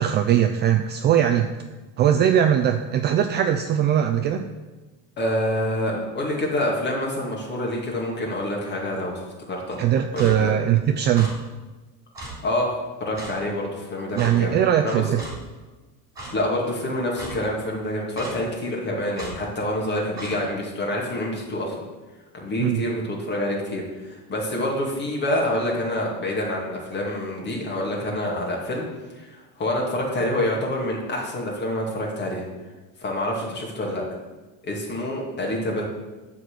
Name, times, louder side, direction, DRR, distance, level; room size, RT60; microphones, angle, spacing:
voice 1, 0.0-1.5 2.0-4.4 9.8-11.3 14.2-15.2 22.6-22.8, right 10 dB, 30° right, 6 dB, 0.4 m, -20 dB
voice 2, 5.2-9.8 10.1-10.6 12.4-12.7 13.0-14.6 14.8-15.0 16.3-21.7 22.3-28.8 29.2-32.5 33.0-34.0 34.6-35.8, left 1 dB, 30° left, -2 dB, 2.4 m, -27 dB
Clock, 10.1-10.3 11.1-11.3 12.1-12.3 13.1-13.3 14.2-14.3 15.2-15.3 16.1-16.3 17.1-17.3 18.1-18.3 19.1-19.3 20.2-20.3, right 2 dB, 10° right, 3.2 m, -36 dB
12.0 x 4.2 x 8.1 m, 1.2 s
cardioid pair, 175°, 36 cm